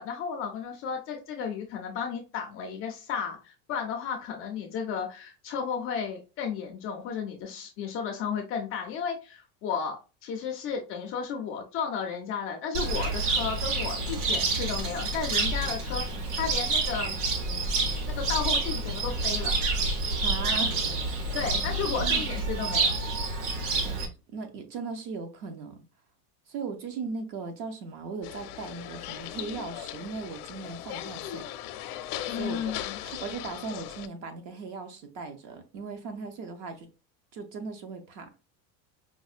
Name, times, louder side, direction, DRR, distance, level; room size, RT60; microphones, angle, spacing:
voice 1, 0.0-17.2 18.1-19.6 21.3-23.0 32.3-33.0, left 6 dB, 30° left, 0.4 m, -33 dB
Cricket, 12.7-24.0, right 3 dB, 85° right, 1.1 m, -28 dB
voice 2, 20.1-20.8 21.3-21.4 22.0-22.3 23.8-25.8 26.5-31.5 32.3-36.9 37.3-38.3, right 4 dB, 45° right, 0.7 m, -38 dB
sound 1, 28.2-34.1, left 12 dB, 85° left, 0.6 m, -38 dB
4.9 x 2.1 x 2.4 m
cardioid pair, 165°, 45 cm